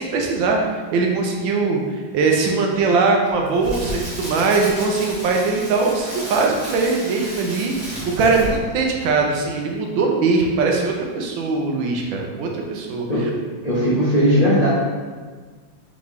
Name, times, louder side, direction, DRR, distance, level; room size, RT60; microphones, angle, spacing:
voice 1, 0.0-1.8 2.1-13.1, right 4 dB, 80° right, 1 dB, 1.4 m, -21 dB
Crackle, 3.3-8.7 9.0-9.2, equal, 35° right, 1.4 m, -33 dB
voice 2, 13.6-14.7, equal, 65° left, -9 dB, 0.4 m, -18 dB
3.8 x 3.7 x 3.2 m, 1.5 s
omnidirectional pair, 2.1 m